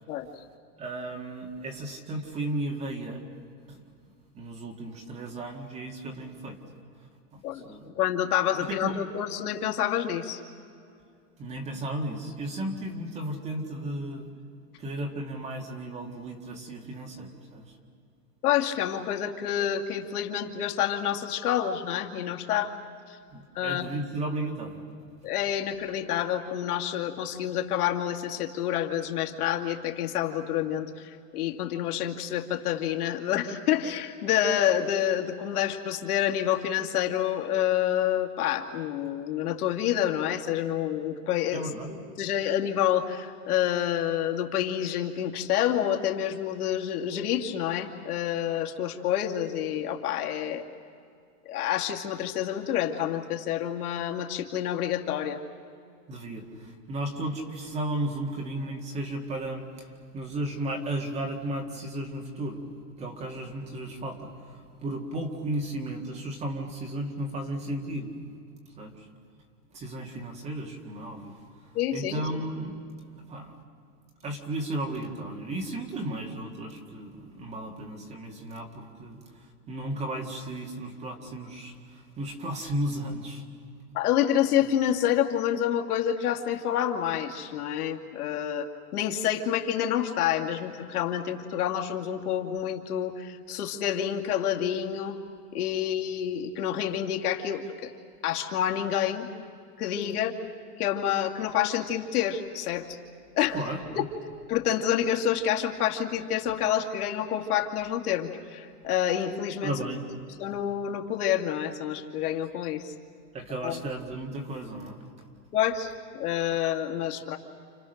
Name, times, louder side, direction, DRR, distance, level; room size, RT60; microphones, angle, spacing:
voice 1, 0.8-3.2 3.7-3.8 4.3-6.6 7.3-7.9 8.6-9.1 11.4-14.3 14.8-17.8 23.3-24.8 41.5-41.9 56.1-62.6 63.0-68.1 68.8-69.1 69.7-72.8 73.3-73.5 74.2-83.4 103.5-104.1 109.6-110.0 113.3-115.0, right 1 dB, 15° right, 2 dB, 1.9 m, -34 dB
voice 2, 7.9-10.4 18.4-22.7 23.1-23.2 23.5-23.9 25.2-50.6 51.5-55.4 71.7-72.2 83.9-95.2 95.5-97.9 98.2-99.3 99.8-100.3 100.8-103.0 103.4-103.6 104.5-109.7 110.4-112.9 113.6-113.8 115.5-117.4, left 10 dB, 75° left, 2 dB, 2.6 m, -28 dB
30.0 x 29.5 x 6.6 m, 2.3 s
supercardioid pair, 180°, 45 cm